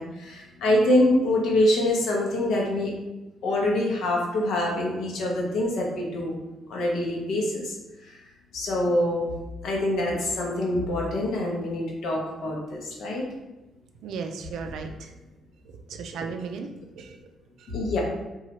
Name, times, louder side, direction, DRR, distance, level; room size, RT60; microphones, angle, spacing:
voice 1, 0.0-2.9 3.4-6.3 6.7-7.8 8.0-8.2 8.5-9.3 9.6-13.3 17.7-18.0, left 1 dB, 75° left, -1 dB, 0.7 m, -25 dB
voice 2, 14.0-15.1 15.9-17.2 17.6-17.7, right 5 dB, 80° right, 5 dB, 0.3 m, -35 dB
2.9 x 2.3 x 2.8 m, 1.0 s
cardioid pair, 90°, 0 cm